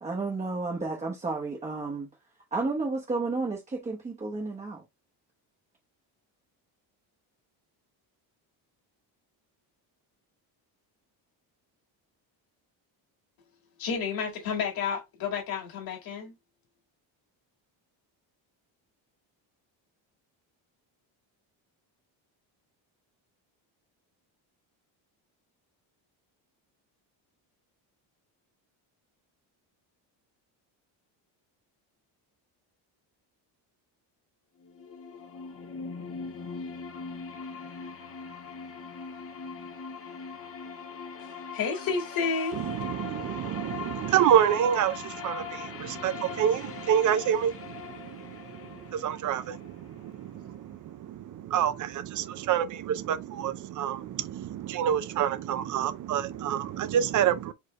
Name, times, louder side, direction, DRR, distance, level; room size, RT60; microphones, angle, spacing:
voice 1, 0.0-2.1 2.5-4.8, right 3 dB, 15° right, 1.0 m, -32 dB
voice 2, 13.8-16.3 41.5-42.6, left 5 dB, 50° left, 2.0 m, -30 dB
sound 1, 34.6-50.6, left 5 dB, 30° left, 0.8 m, -41 dB
voice 3, 42.5-57.5, right 9 dB, 45° right, 0.6 m, -28 dB
4.6 x 3.2 x 3.0 m
cardioid pair, 155°, 44 cm